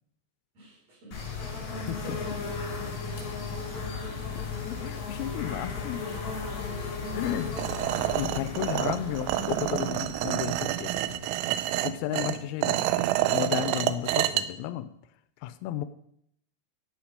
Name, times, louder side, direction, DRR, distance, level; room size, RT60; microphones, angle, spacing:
voice 1, 0.5-2.5 2.8-3.2, right 1 dB, 35° right, -4 dB, 5.3 m, -45 dB
sound 1, 1.1-11.7, left 4 dB, 45° left, 3.4 m, -36 dB
voice 2, 1.9-2.2 4.3-6.3 7.1-7.6 8.1-11.3 11.8-12.9 13.3-14.9 15.4-15.9, left 12 dB, 90° left, 12 dB, 3.2 m, -33 dB
sound 2, 7.6-14.4, right 14 dB, 85° right, 2.8 m, -28 dB
11.5 x 8.2 x 5.1 m, 0.72 s
omnidirectional pair, 5.8 m